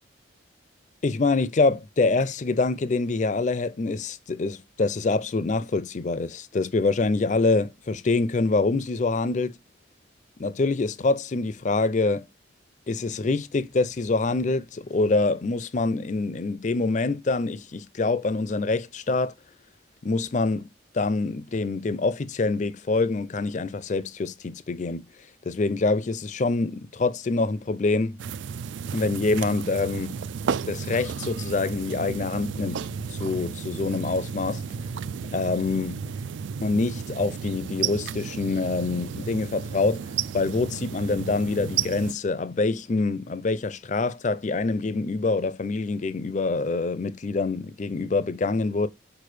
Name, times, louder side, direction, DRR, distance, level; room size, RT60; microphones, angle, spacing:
voice 1, 1.0-9.6 10.4-12.3 12.9-19.3 20.0-20.7 20.9-25.1 25.4-28.2 28.9-30.1 30.7-32.8 33.1-34.6 35.3-36.1 36.6-40.0 40.3-48.9, left 3 dB, 35° left, 0.4 m, -25 dB
sound 1, 28.2-42.1, right 7 dB, 70° right, 0.3 m, -33 dB
6.7 x 4.5 x 3.2 m
head